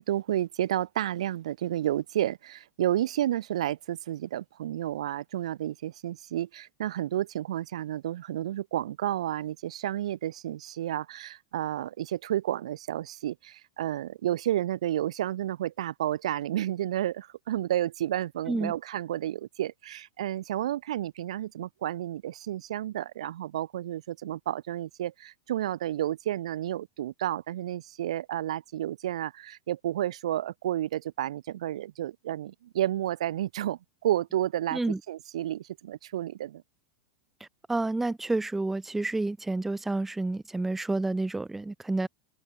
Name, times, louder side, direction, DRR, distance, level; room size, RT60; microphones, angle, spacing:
voice 1, 0.0-34.8 35.1-36.6, right 12 dB, 75° right, 0.5 m, -31 dB
voice 2, 37.7-42.1, right 2 dB, 5° right, 0.3 m, -29 dB
open air
hypercardioid pair, 110°, 3 cm